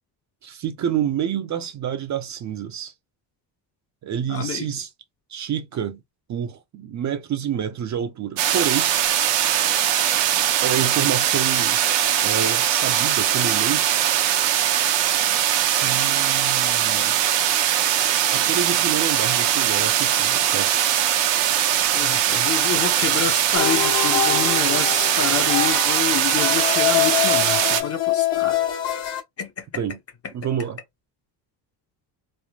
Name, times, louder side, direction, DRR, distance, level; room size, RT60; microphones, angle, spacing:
voice 1, 0.4-2.9 4.0-4.9 5.3-6.0 6.3-8.9 10.6-11.8 12.2-14.0 15.7-17.2 18.3-20.7 29.8-30.0 30.3-30.8, right 9 dB, 40° right, 0.5 m, -28 dB
voice 2, 4.3-4.7 21.9-28.6 29.4-29.6, left 8 dB, 35° left, 0.7 m, -28 dB
sound 1, 8.4-27.8, right 11 dB, 75° right, 0.8 m, -21 dB
sound 2, 23.6-29.2, left 12 dB, 60° left, 1.1 m, -25 dB
3.2 x 2.0 x 2.3 m
cardioid pair, 120°, 44 cm